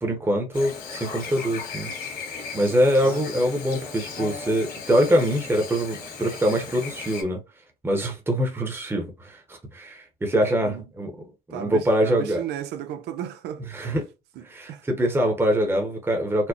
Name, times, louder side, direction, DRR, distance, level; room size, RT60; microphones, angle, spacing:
voice 1, 0.0-1.9 2.5-7.4 7.8-11.1 11.5-12.4 13.7-14.1 14.4-16.5, equal, 15° right, 1.0 m, -24 dB
Chirp tweet / Buzz, 0.5-7.2, left 5 dB, 65° left, 1.9 m, -36 dB
voice 2, 3.0-3.5 10.3-10.8 11.5-14.0 14.4-14.9, right 10 dB, 80° right, 0.7 m, -35 dB
4.5 x 2.1 x 2.8 m
cardioid pair, 110°, 17 cm